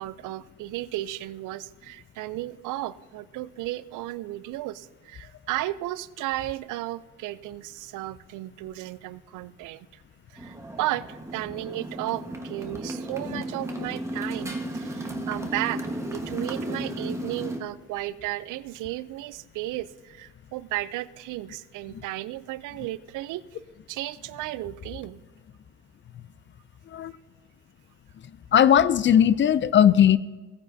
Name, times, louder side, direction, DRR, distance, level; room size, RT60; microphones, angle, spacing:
voice 1, 0.0-10.0 10.3-23.6 23.9-25.2, right 16 dB, 85° right, 17 dB, 0.5 m, -34 dB
Motorcycle, 10.4-17.6, right 1 dB, 10° right, 1.3 m, -34 dB
voice 2, 28.5-30.2, left 9 dB, 40° left, 17 dB, 0.4 m, -19 dB
17.0 x 9.1 x 2.7 m, 1.3 s
cardioid pair, 90°, 30 cm